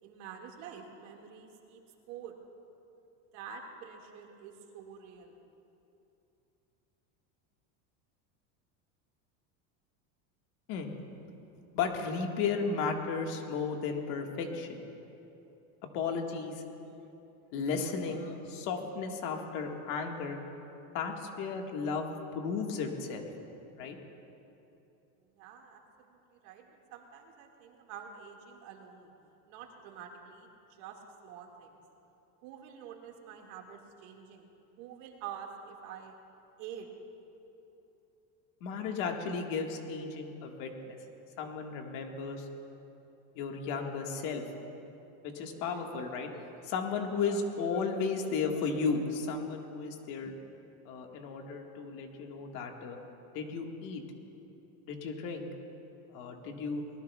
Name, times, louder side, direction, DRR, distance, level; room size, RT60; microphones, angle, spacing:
voice 1, 0.0-2.4 3.3-5.4 25.2-29.1 29.5-31.8 32.4-34.5 34.8-36.1 36.6-36.9, right 7 dB, 65° right, 1 dB, 2.0 m, -47 dB
voice 2, 11.7-14.8 15.9-16.6 17.5-20.4 20.9-22.1 22.3-23.3 23.8-24.0 38.6-41.0 41.4-42.4 43.3-44.4 45.2-50.3 50.8-53.0 53.3-54.0 54.8-55.5 56.1-56.8, left 5 dB, 50° left, 2 dB, 1.7 m, -34 dB
23.5 x 19.5 x 2.3 m, 2.9 s
cardioid pair, 170°, 41 cm